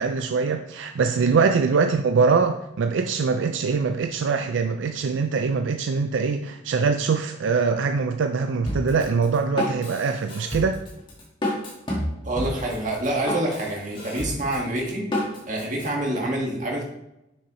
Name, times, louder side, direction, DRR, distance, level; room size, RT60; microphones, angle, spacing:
voice 1, 0.0-10.8, right 5 dB, 80° right, 7 dB, 0.4 m, -23 dB
Drum kit, 8.7-15.9, left 1 dB, 25° left, 1.6 m, -30 dB
voice 2, 12.2-15.0 15.5-16.8, right 1 dB, 40° right, -1 dB, 1.6 m, -27 dB
6.5 x 6.2 x 3.0 m, 0.88 s
head